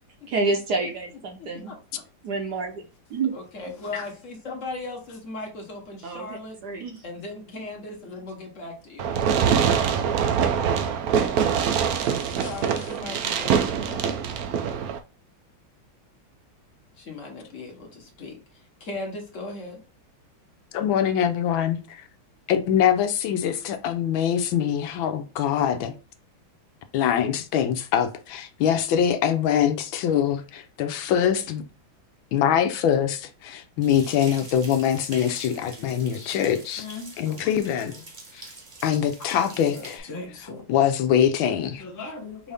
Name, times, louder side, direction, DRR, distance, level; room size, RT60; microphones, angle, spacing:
voice 1, 0.3-1.8 2.2-2.8 3.1-3.3 6.0-7.0, right 3 dB, 65° right, 1.1 m, -28 dB
voice 2, 1.4-2.0 3.3-6.6 7.0-9.4 12.3-14.2 17.0-19.8, left 2 dB, 45° left, 1.2 m, -38 dB
voice 3, 3.8-4.1 35.8-36.3 36.8-37.5 37.9-38.0 39.2-40.6 41.8-42.5, left 4 dB, 15° left, 0.6 m, -39 dB
Fireworks, 9.0-15.0, right 7 dB, 80° right, 0.8 m, -24 dB
voice 4, 20.7-22.0 22.5-25.9 26.9-31.6 32.3-36.8 37.2-37.9 38.8-40.0 40.7-41.8, left 9 dB, 80° left, 1.4 m, -23 dB
sound 1, 33.8-40.0, right 3 dB, 35° right, 0.7 m, -44 dB
5.4 x 2.7 x 3.4 m
omnidirectional pair, 2.2 m